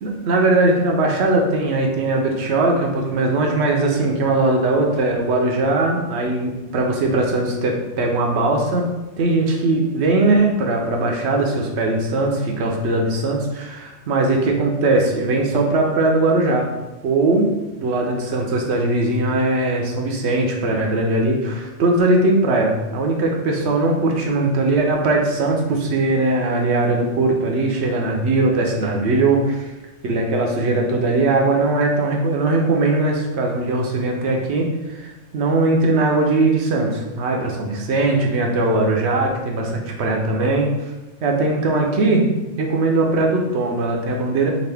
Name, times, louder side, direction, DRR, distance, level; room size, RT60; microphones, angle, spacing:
voice 1, 0.0-8.9 9.2-16.7 17.0-17.5 17.8-29.7 30.0-40.7 41.2-42.3 42.6-44.5, right 2 dB, 70° right, 1 dB, 0.9 m, -20 dB
3.8 x 2.5 x 3.3 m, 1.1 s
omnidirectional pair, 1.2 m